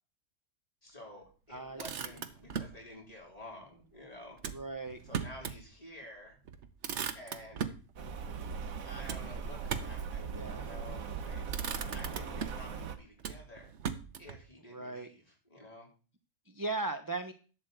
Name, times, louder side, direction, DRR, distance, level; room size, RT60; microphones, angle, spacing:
voice 1, 0.8-4.4 5.0-6.4 7.1-7.7 8.8-13.7 14.2-15.9, left 1 dB, 25° left, -1 dB, 4.0 m, -51 dB
voice 2, 1.5-1.8 4.5-5.0 10.3-10.7 14.7-15.1 16.5-17.3, right 3 dB, 20° right, 8 dB, 0.6 m, -37 dB
Motor vehicle (road), 1.5-2.8 4.4-5.6 6.0-6.1 6.5-7.9 9.1-10.1 10.9-11.2 11.5-12.7 13.2-14.4, right 7 dB, 60° right, 1.2 m, -39 dB
Rain, 8.0-13.0, right 6 dB, 80° right, 1.5 m, -39 dB
11.5 x 4.4 x 7.8 m, 0.36 s
omnidirectional pair, 1.4 m